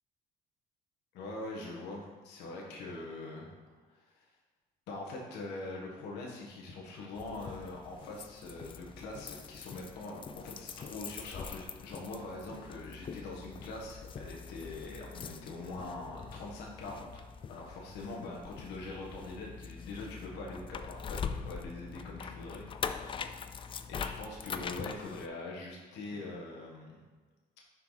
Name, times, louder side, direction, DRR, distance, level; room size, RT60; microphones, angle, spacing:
voice 1, 1.1-3.5 3.9-4.3 4.9-23.3 23.9-27.0, left 2 dB, 85° left, -2 dB, 1.4 m, -43 dB
sound 1, 7.2-25.3, left 6 dB, 30° left, 0.4 m, -43 dB
6.8 x 4.7 x 3.9 m, 1.4 s
cardioid pair, 110°, 17 cm